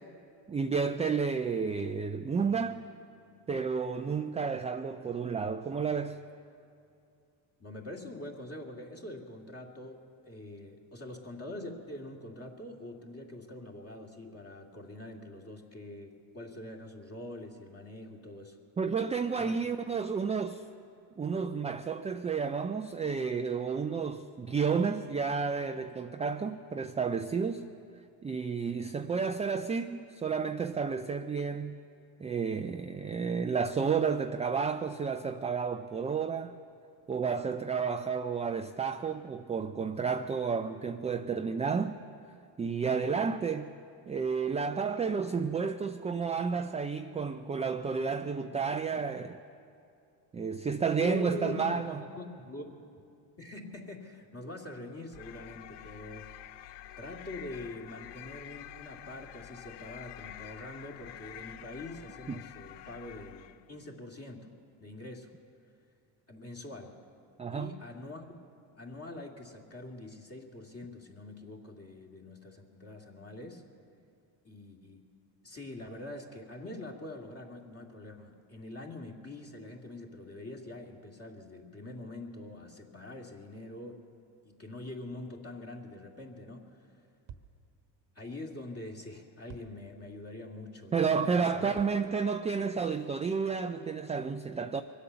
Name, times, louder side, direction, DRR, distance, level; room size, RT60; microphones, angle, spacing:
voice 1, 0.5-2.8 3.5-6.2 18.8-20.6 21.2-27.7 28.2-31.8 32.2-36.6 37.1-42.0 42.6-43.7 44.1-49.4 50.3-52.0 62.3-62.4 67.4-67.7 90.9-94.8, right 5 dB, 15° right, 7 dB, 0.3 m, -31 dB
voice 2, 7.6-18.6 19.4-19.6 51.0-52.8 53.4-56.3 57.0-64.5 64.8-65.3 66.3-67.0 67.5-68.4 68.8-73.6 74.4-75.0 75.4-84.0 84.4-86.8 88.2-91.7, left 2 dB, 30° left, 1 dB, 2.3 m, -44 dB
sound 1, 55.1-63.7, left 12 dB, 60° left, 0.6 m, -48 dB
sound 2, 87.3-87.9 89.5-90.3 91.7-92.6, right 7 dB, 60° right, 1.2 m, -52 dB
23.5 x 8.4 x 6.9 m, 2.5 s
supercardioid pair, 85°, 49 cm